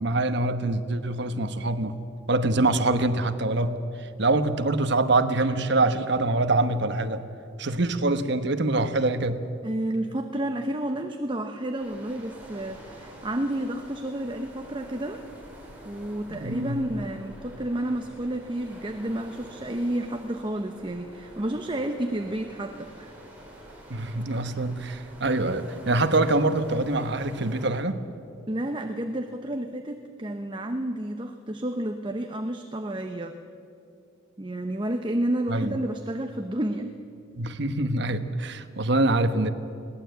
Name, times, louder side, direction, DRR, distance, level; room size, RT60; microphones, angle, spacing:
voice 1, 0.0-1.9 2.3-7.2 7.6-9.4 16.3-16.8 23.9-28.0 35.5-35.7 37.3-39.5, right 2 dB, 60° right, 9 dB, 1.1 m, -25 dB
voice 2, 9.6-15.2 15.8-23.1 28.5-33.4 34.4-36.9, right 1 dB, 25° right, 6 dB, 0.8 m, -30 dB
sound 1, 11.8-27.7, right 1 dB, 10° right, 4.5 m, -47 dB
21.5 x 17.5 x 8.1 m, 2.5 s
head